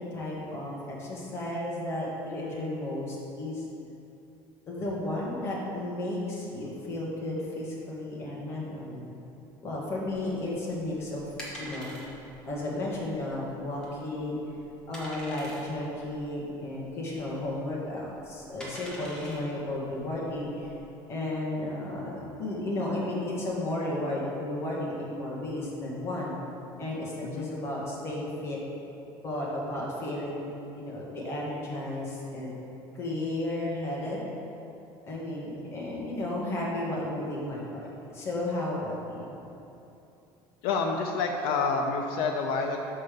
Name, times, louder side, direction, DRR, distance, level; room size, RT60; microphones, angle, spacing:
voice 1, 0.0-3.7 4.7-9.0 9.6-11.2 11.6-12.0 12.4-14.4 14.9-20.7 21.1-26.3 26.8-28.6 29.2-30.5 30.7-32.5 32.9-34.2 35.1-37.9 38.1-39.4, left 1 dB, 25° left, -5 dB, 1.5 m, -33 dB
sound 1, 10.1-20.7, equal, 10° left, 1.2 m, -46 dB
voice 2, 40.6-42.8, left 4 dB, 80° left, 2 dB, 0.6 m, -28 dB
5.6 x 5.3 x 6.7 m, 2.8 s
cardioid pair, 175°, 10 cm